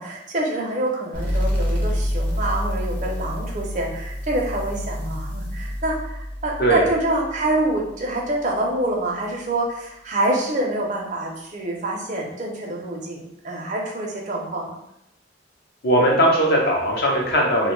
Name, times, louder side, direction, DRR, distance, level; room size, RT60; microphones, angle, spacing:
voice 1, 0.0-14.7, right 1 dB, 40° right, -1 dB, 0.5 m, -26 dB
sound 1, 1.1-8.4, equal, 10° left, 0.5 m, -28 dB
voice 2, 15.8-17.7, right 1 dB, 55° left, -1 dB, 0.6 m, -19 dB
2.6 x 2.2 x 3.0 m, 0.80 s
head